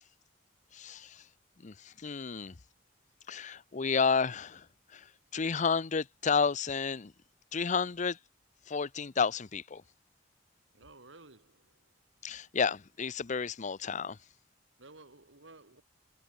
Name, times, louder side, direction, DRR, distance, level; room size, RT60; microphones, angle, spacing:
voice 1, 0.7-1.2 1.6-2.5 3.3-4.7 4.9-5.1 5.3-7.1 7.5-8.2 8.7-9.8 12.2-14.2, left 5 dB, 40° left, 0.6 m, -31 dB
voice 2, 10.7-11.9 14.8-15.8, right 3 dB, 90° right, 3.0 m, -55 dB
head